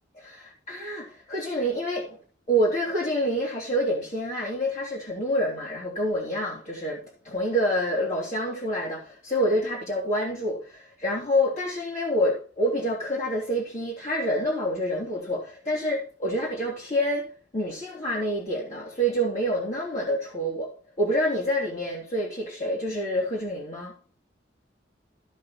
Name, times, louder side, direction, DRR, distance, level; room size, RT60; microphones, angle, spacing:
voice 1, 0.2-2.2 2.5-23.9, equal, 40° left, 3.3 m, -27 dB
15.5 x 5.2 x 4.4 m
head